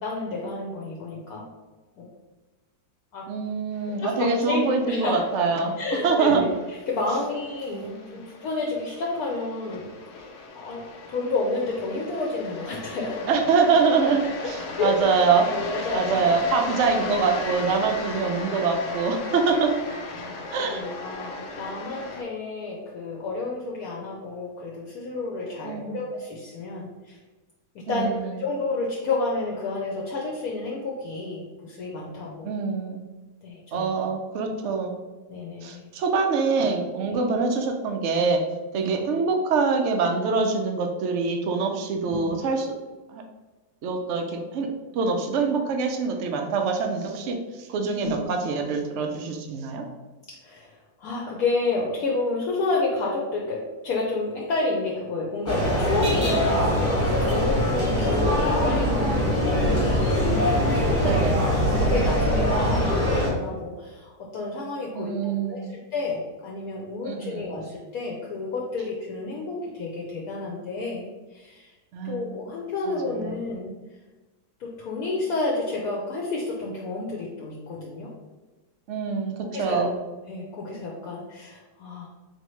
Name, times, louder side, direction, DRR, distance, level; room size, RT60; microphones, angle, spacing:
voice 1, 0.0-1.5 2.0-2.1 3.1-3.3 4.0-5.2 5.8-7.9 8.1-9.9 10.5-13.3 14.0-14.1 14.4-14.5 14.8-14.9 15.5-16.2 20.1-27.2 27.7-32.6 33.4-33.9 35.3-35.9 37.1-37.2 38.7-39.0 42.1-42.3 48.0-48.2 50.4-71.7 72.0-73.7 74.6-78.1 79.4-79.8 80.3-82.1, left 3 dB, 70° left, -2 dB, 1.0 m, -30 dB
voice 2, 3.3-5.7 6.0-6.4 7.7-8.2 13.3-15.5 15.9-19.7 20.5-20.8 25.6-26.0 27.9-28.4 32.4-33.0 33.7-35.0 35.6-38.4 38.7-42.7 43.1-43.2 43.8-44.7 44.9-49.8 61.0-61.4 64.9-65.7 67.0-67.5 71.9-72.4 72.9-73.4 78.9-79.9, right 4 dB, 75° right, 3 dB, 0.6 m, -25 dB
sound 1, 3.9-22.2, left 3 dB, 85° left, 0.5 m, -37 dB
sound 2, 55.5-63.3, equal, 10° left, 1.2 m, -22 dB
4.3 x 2.9 x 3.0 m, 1.2 s
omnidirectional pair, 1.8 m